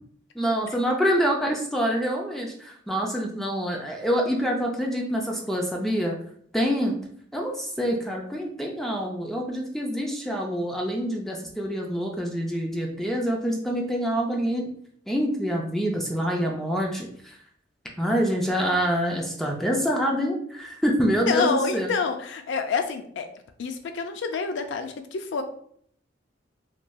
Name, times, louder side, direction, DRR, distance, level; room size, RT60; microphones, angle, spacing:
voice 1, 0.3-6.2 6.5-7.0 7.3-14.7 15.1-17.4 18.0-21.9, equal, ahead, 0 dB, 0.4 m, -26 dB
voice 2, 21.3-23.3 23.6-25.4, left 5 dB, 70° left, 7 dB, 0.4 m, -27 dB
3.1 x 2.6 x 2.2 m, 0.63 s
head